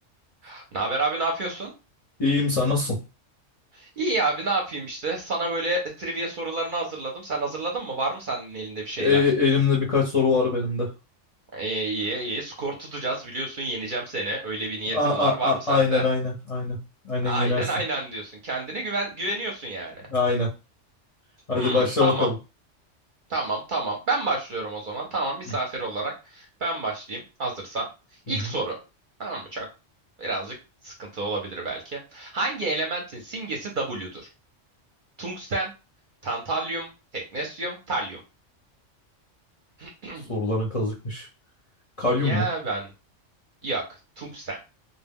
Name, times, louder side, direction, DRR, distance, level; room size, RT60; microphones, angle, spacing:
voice 1, 0.4-1.7 3.7-9.2 11.5-16.1 17.3-20.1 21.5-22.3 23.3-27.9 28.3-28.8 29.2-29.7 30.2-30.5 30.8-34.2 35.2-35.7 36.2-38.2 39.8-40.3 42.2-42.9 43.6-43.8 44.2-44.6, right 2 dB, 55° right, 0 dB, 0.6 m, -29 dB
voice 2, 2.2-3.0 9.0-10.9 14.9-16.8 17.0-17.7 20.1-20.5 21.5-22.3 28.3-28.4 40.3-41.3 42.0-42.4, left 3 dB, 40° left, -4 dB, 0.6 m, -23 dB
2.1 x 2.1 x 3.4 m, 0.29 s
omnidirectional pair, 1.3 m